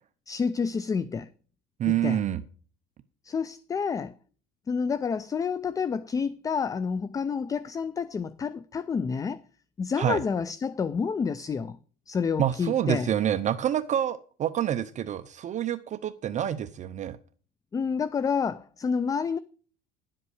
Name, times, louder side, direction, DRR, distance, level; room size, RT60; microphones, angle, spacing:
voice 1, 0.3-1.3 1.9-2.2 3.2-4.1 4.7-9.4 9.8-11.8 12.1-13.1 17.7-19.4, left 6 dB, 15° left, 0.4 m, -29 dB
voice 2, 1.8-2.4 10.0-10.2 12.4-17.2, right 10 dB, 35° right, 0.7 m, -27 dB
11.0 x 7.7 x 4.8 m
cardioid pair, 135°, 21 cm